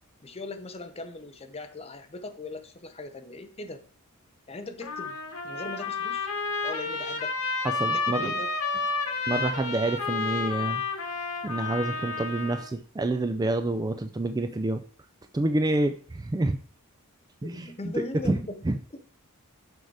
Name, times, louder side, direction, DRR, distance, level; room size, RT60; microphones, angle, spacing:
voice 1, 0.2-3.9 4.5-5.2 5.4-6.3 6.6-7.4 7.9-8.9 17.4-18.7, left 2 dB, 25° left, 8 dB, 0.7 m, -39 dB
Trumpet, 4.8-12.7, left 4 dB, 85° left, 1.2 m, -31 dB
voice 2, 7.8-8.3 9.3-10.8 11.4-14.8 15.3-16.6 17.4-17.7 18.3-18.4 18.7-18.8, right 2 dB, 15° right, 8 dB, 0.3 m, -27 dB
6.5 x 4.6 x 4.8 m, 0.43 s
head